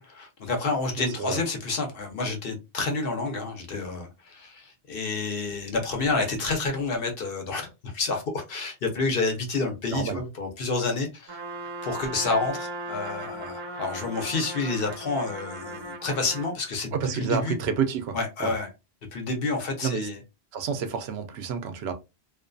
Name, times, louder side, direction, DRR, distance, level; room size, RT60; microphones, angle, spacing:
voice 1, 0.0-7.7 7.9-11.4 11.8-17.6 18.1-18.7 19.1-20.2, left 3 dB, 65° left, 0.9 m, -29 dB
voice 2, 1.0-1.4 9.9-10.2 16.9-18.2 18.4-18.5 19.8-20.1 20.5-21.9, right 6 dB, 80° right, 0.8 m, -29 dB
Trumpet, 11.3-16.5, right 2 dB, 50° right, 0.7 m, -37 dB
2.5 x 2.3 x 2.5 m
omnidirectional pair, 1.1 m